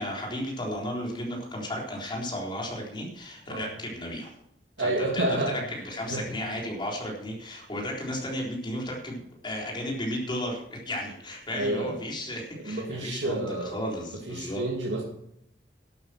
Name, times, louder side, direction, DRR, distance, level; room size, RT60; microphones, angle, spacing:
voice 1, 0.0-4.3 4.8-13.4 13.6-14.6, left 1 dB, 25° left, -2 dB, 4.0 m, -34 dB
voice 2, 4.8-5.6 6.1-6.3 11.5-12.0 12.6-13.8 14.3-15.0, right 1 dB, 85° right, -2 dB, 2.4 m, -29 dB
12.0 x 9.1 x 6.3 m, 0.73 s
head